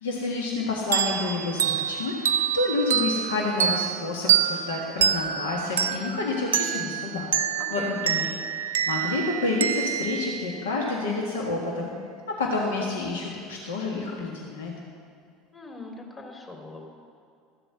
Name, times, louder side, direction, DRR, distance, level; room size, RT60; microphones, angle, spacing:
voice 1, 0.0-7.3 7.7-11.9 12.3-14.7, left 3 dB, 80° left, -1 dB, 1.6 m, -29 dB
sound 1, 0.9-11.2, right 9 dB, 85° right, 0.4 m, -27 dB
voice 2, 7.6-8.0 15.5-16.9, left 2 dB, 30° left, 0 dB, 3.2 m, -41 dB
14.0 x 7.8 x 6.8 m, 2.3 s
hypercardioid pair, 75°, 0 cm